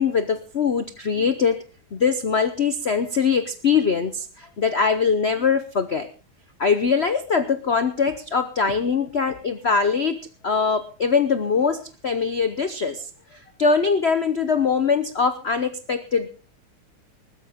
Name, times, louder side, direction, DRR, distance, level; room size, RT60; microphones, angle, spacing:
voice 1, 0.0-1.6 1.9-6.1 6.6-16.3, left 5 dB, 80° left, 10 dB, 0.5 m, -22 dB
20.0 x 13.0 x 3.6 m, 0.34 s
omnidirectional pair, 2.4 m